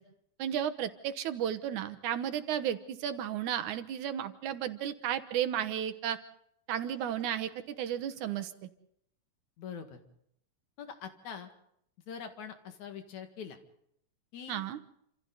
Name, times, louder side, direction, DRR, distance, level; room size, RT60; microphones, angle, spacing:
voice 1, 0.4-6.2 6.7-8.7 14.5-14.8, right 10 dB, 90° right, 11 dB, 2.6 m, -33 dB
voice 2, 9.6-10.0 10.8-11.5 12.1-13.6 14.3-14.6, left 7 dB, 75° left, 6 dB, 3.3 m, -43 dB
28.0 x 27.0 x 4.0 m, 0.72 s
omnidirectional pair, 3.4 m